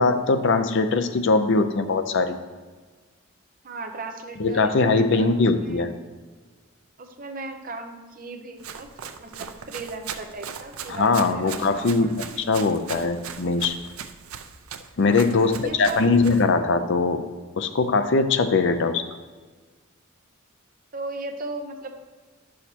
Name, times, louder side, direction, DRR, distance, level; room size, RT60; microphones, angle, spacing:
voice 1, 0.0-2.4 4.4-5.9 10.9-13.7 15.0-17.2 17.6-19.0, left 3 dB, 60° left, 9 dB, 0.5 m, -21 dB
voice 2, 3.6-5.9 7.0-12.6 15.2-16.0 18.6-18.8 20.9-22.0, right 3 dB, 40° right, 5 dB, 0.7 m, -37 dB
Run, 8.6-16.5, right 7 dB, 90° right, 0.5 m, -39 dB
10.0 x 6.4 x 2.8 m, 1.4 s
head